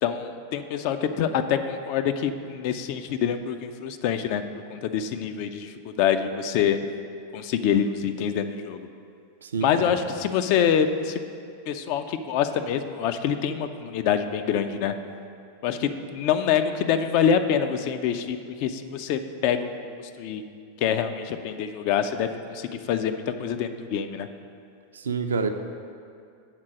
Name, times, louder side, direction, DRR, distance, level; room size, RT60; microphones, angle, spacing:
voice 1, 0.0-4.4 4.7-6.8 7.3-8.8 9.6-11.2 11.7-14.9 15.6-20.4 20.8-24.3, left 8 dB, 45° left, 8 dB, 0.4 m, -26 dB
voice 2, 9.4-10.0 24.9-25.5, right 5 dB, 70° right, 7 dB, 0.4 m, -28 dB
7.4 x 3.9 x 6.1 m, 2.4 s
figure-of-eight pair, 90°, 0 cm